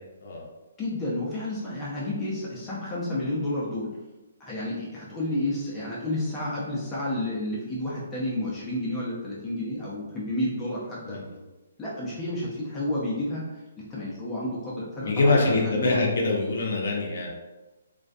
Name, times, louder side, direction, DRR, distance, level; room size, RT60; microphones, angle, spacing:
voice 1, 0.8-3.9 4.4-11.2 11.8-13.6 13.9-16.0, left 1 dB, 15° left, -7 dB, 0.6 m, -31 dB
voice 2, 15.0-17.3, left 2 dB, 65° left, -1 dB, 0.5 m, -24 dB
2.2 x 2.2 x 2.6 m, 1.1 s
hypercardioid pair, 150°, 0 cm